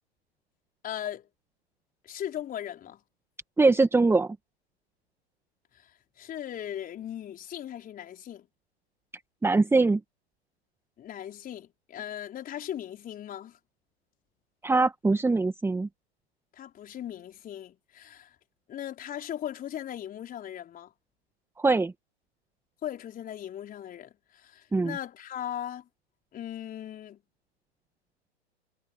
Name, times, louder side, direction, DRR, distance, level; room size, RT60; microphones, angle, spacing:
voice 1, 0.8-1.3 2.0-3.0 5.8-5.9 6.2-8.5 11.0-13.6 16.6-18.3 18.7-20.9 22.8-25.9 26.3-27.2, left 10 dB, 25° left, 4.8 m, -38 dB
voice 2, 3.6-4.4 9.4-10.0 14.6-15.9 21.6-21.9 24.7-24.9, right 3 dB, 5° right, 1.7 m, -22 dB
figure-of-eight pair, 100°, 33 cm